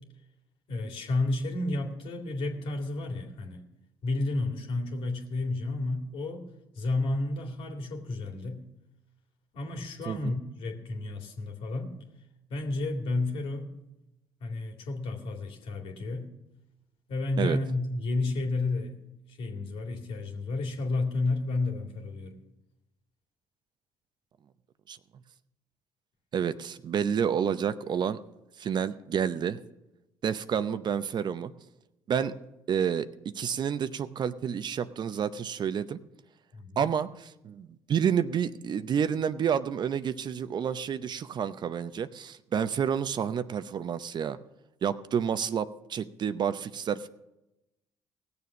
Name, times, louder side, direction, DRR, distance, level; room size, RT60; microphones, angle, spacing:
voice 1, 0.7-3.6 4.0-6.5 6.7-8.6 9.5-11.9 12.5-13.7 14.4-16.3 17.1-19.0 19.3-22.4 36.5-36.9, left 2 dB, 65° left, 3 dB, 2.3 m, -31 dB
voice 2, 10.1-10.4 17.4-17.6 24.9-25.0 26.3-28.2 28.6-29.6 30.2-31.5 32.1-32.3 32.7-33.1 33.3-36.0 36.8-44.4 44.8-47.1, right 8 dB, 50° right, 13 dB, 0.7 m, -29 dB
17.5 x 7.0 x 6.1 m, 0.92 s
hypercardioid pair, 65°, 10 cm